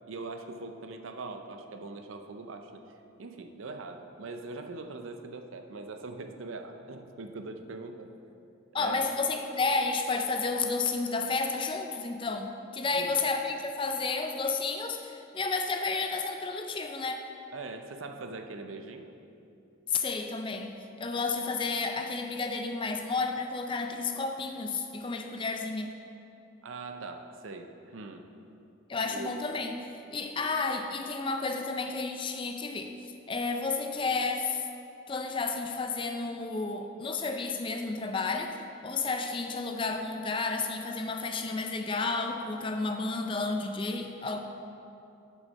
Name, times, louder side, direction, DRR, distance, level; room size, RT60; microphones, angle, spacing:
voice 1, 0.1-8.1 8.7-9.1 12.9-13.1 17.5-19.1 26.6-28.3 29.0-29.4 30.4-30.5, right 3 dB, 80° right, 6 dB, 0.6 m, -42 dB
voice 2, 8.7-17.2 19.9-25.9 28.9-33.0 33.3-34.7 35.1-38.6 38.8-44.4, left 4 dB, 25° left, 5 dB, 0.4 m, -31 dB
6.5 x 6.3 x 5.4 m, 2.7 s
head